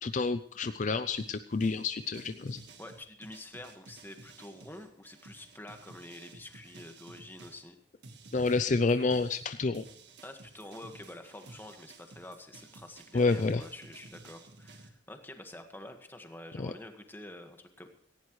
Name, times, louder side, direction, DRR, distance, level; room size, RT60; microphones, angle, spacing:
voice 1, 0.0-2.6 8.3-9.9 13.1-13.6 16.6-16.7, left 3 dB, 45° left, 11 dB, 0.5 m, -29 dB
sound 1, 1.2-7.7 8.0-14.9, right 3 dB, 70° right, 2.0 m, -53 dB
voice 2, 2.8-7.8 10.2-17.9, left 1 dB, 10° left, 5 dB, 1.6 m, -47 dB
18.0 x 16.0 x 3.2 m, 0.64 s
head